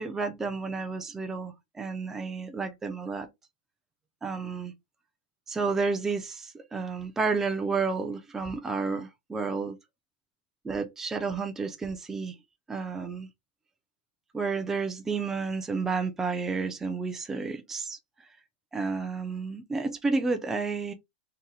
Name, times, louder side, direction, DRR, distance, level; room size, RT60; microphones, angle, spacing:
voice 1, 0.0-3.3 4.2-4.7 5.5-9.8 10.6-12.4 12.7-13.3 14.3-18.0 18.7-20.9, right 4 dB, 5° right, 0.3 m, -31 dB
2.7 x 2.0 x 3.8 m
supercardioid pair, 165°, 6 cm